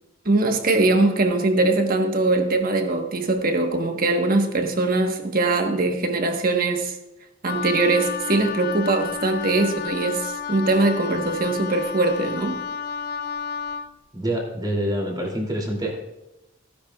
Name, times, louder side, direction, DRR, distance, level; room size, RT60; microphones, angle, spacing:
voice 1, 0.2-6.9 7.4-12.6, right 2 dB, 50° right, 4 dB, 1.2 m, -21 dB
Wind instrument woodwind instrument, 7.4-13.9, left 6 dB, 50° left, 0.4 m, -31 dB
voice 2, 14.1-16.0, right 1 dB, 20° right, 0 dB, 2.7 m, -26 dB
15.5 x 10.0 x 2.4 m, 0.94 s
head